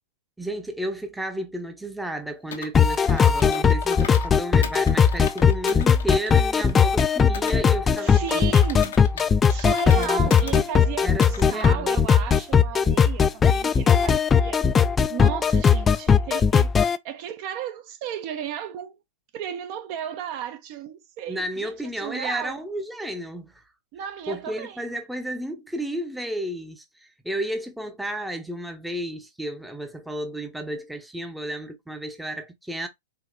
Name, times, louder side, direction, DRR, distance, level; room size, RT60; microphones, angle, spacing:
voice 1, 0.4-8.6 10.0-10.6 11.0-12.0 21.3-23.6 24.3-32.9, right 1 dB, 5° right, 0.7 m, -32 dB
Computer keyboard, 2.5-4.3 4.6-7.6 8.0-10.6 11.0-11.7, left 7 dB, 75° left, 0.9 m, -39 dB
sound 1, 2.8-17.0, left 6 dB, 20° left, 0.3 m, -19 dB
voice 2, 8.0-8.9 9.5-14.6 15.1-16.7 17.0-19.0 19.3-22.6 23.9-24.9, right 9 dB, 45° right, 0.7 m, -34 dB
4.7 x 2.9 x 2.5 m
hypercardioid pair, 115°, 0 cm